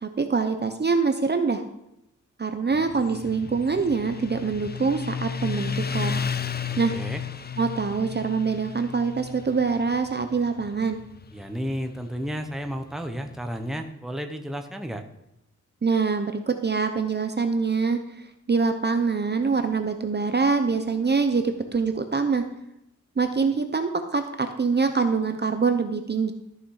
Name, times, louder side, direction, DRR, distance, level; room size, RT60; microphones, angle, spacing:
voice 1, 0.0-1.6 2.4-6.2 6.8-7.0 7.6-11.0 15.8-18.0 18.5-22.4 23.2-26.3, right 4 dB, 35° right, 7 dB, 0.7 m, -24 dB
Motorcycle, 2.7-13.8, left 6 dB, 30° left, 0.4 m, -34 dB
voice 2, 6.7-7.2 11.3-15.0, equal, ahead, 5 dB, 0.9 m, -32 dB
13.5 x 6.5 x 4.8 m, 0.85 s
wide cardioid pair, 160°, 31 cm